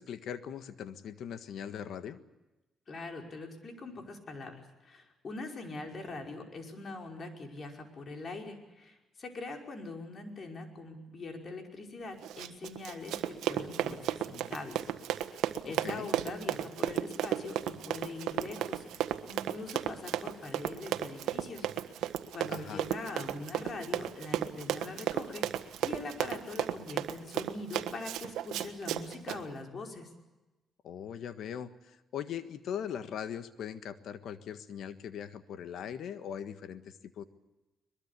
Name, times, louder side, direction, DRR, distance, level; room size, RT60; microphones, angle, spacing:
voice 1, 0.0-2.2 15.6-16.1 22.5-22.9 30.8-37.2, left 8 dB, 70° left, 11 dB, 1.6 m, -40 dB
voice 2, 2.9-14.8 15.6-18.8 19.3-21.7 22.0-30.1, left 3 dB, 45° left, 3 dB, 5.3 m, -43 dB
Run, 12.2-29.4, right 11 dB, 85° right, 1.5 m, -34 dB
23.0 x 22.0 x 8.4 m, 1.1 s
cardioid pair, 90°, 0 cm